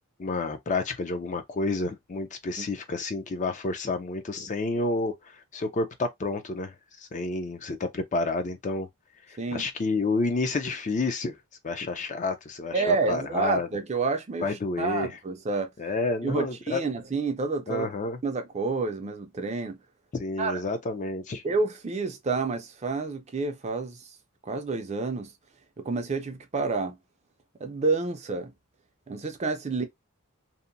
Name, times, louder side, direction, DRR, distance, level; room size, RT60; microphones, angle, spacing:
voice 1, 0.2-6.7 7.0-8.9 9.3-11.4 11.6-13.7 14.4-15.1 15.8-16.8 17.7-18.2 20.1-21.4 29.8-29.9, left 3 dB, 35° left, 0.4 m, -30 dB
voice 2, 12.7-15.7 16.2-17.9 18.2-19.8 20.4-20.6 21.4-24.0 24.4-25.3 25.8-27.0 27.6-28.5 29.1-29.8, right 3 dB, 30° right, 0.5 m, -29 dB
2.7 x 2.1 x 2.5 m
head